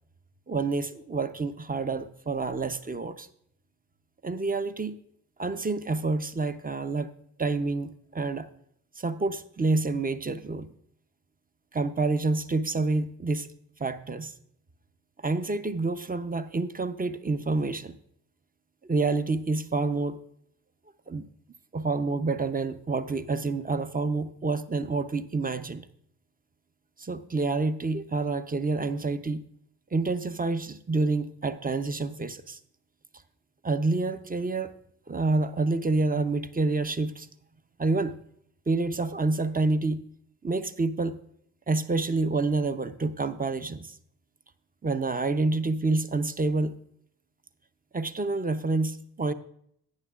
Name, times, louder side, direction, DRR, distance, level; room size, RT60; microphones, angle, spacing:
voice 1, 0.5-3.3 4.2-4.9 5.4-7.1 7.4-8.5 9.0-10.7 11.7-13.5 13.8-14.3 15.2-17.9 18.8-20.2 21.1-21.3 21.7-25.9 27.0-29.4 29.9-32.6 33.6-34.7 35.1-37.3 37.8-38.2 38.7-40.0 40.4-41.2 41.7-43.9 44.8-46.8 47.9-49.3, right 3 dB, 20° right, 11 dB, 0.7 m, -28 dB
13.5 x 9.2 x 2.5 m, 0.68 s
hypercardioid pair, 40°, 49 cm